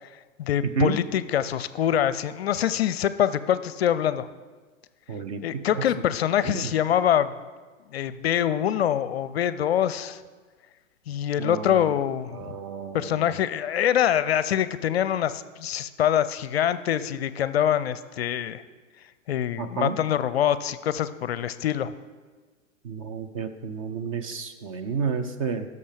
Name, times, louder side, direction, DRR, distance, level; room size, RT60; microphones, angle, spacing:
voice 1, 0.4-4.3 5.4-7.3 7.9-10.2 11.1-12.6 12.9-18.6 19.3-21.9, left 10 dB, 55° left, 15 dB, 0.5 m, -24 dB
voice 2, 5.1-5.6 11.4-11.6 12.4-13.0 19.6-20.0 22.9-25.7, right 5 dB, 30° right, 8 dB, 0.4 m, -30 dB
16.5 x 6.7 x 3.4 m, 1.4 s
figure-of-eight pair, 110°, 39 cm